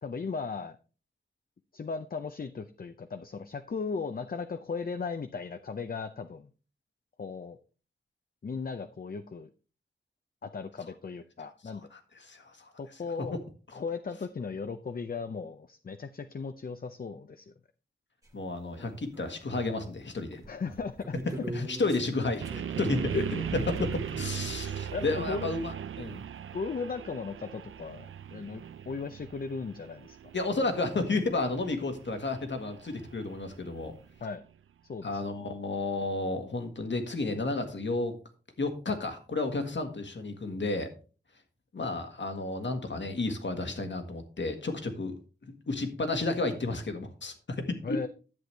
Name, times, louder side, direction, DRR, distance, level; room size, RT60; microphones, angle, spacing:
voice 1, 0.0-0.8 1.7-6.5 7.2-7.6 8.4-9.5 10.4-11.9 12.8-13.3 13.7-17.5 20.5-21.7 24.9-25.5 26.5-30.2 34.2-34.4 34.9-35.2 47.8-48.1, left 5 dB, 45° left, 9 dB, 0.6 m, -37 dB
voice 2, 11.7-12.7 18.3-20.4 21.5-26.2 30.3-33.9 35.0-38.2 38.6-40.9 41.7-45.2 45.7-48.0, left 2 dB, 65° left, 6 dB, 1.7 m, -32 dB
sound 1, 18.2-18.3 18.7-19.8 20.2-24.5 27.1-27.2 27.4-27.5 28.5-28.6 29.2-29.3 32.9-33.0 33.2-33.6, right 1 dB, 15° right, 1.6 m, -43 dB
sound 2, 22.4-34.4, right 8 dB, 90° right, 0.4 m, -39 dB
10.5 x 7.8 x 3.4 m, 0.37 s
wide cardioid pair, 80°, 20 cm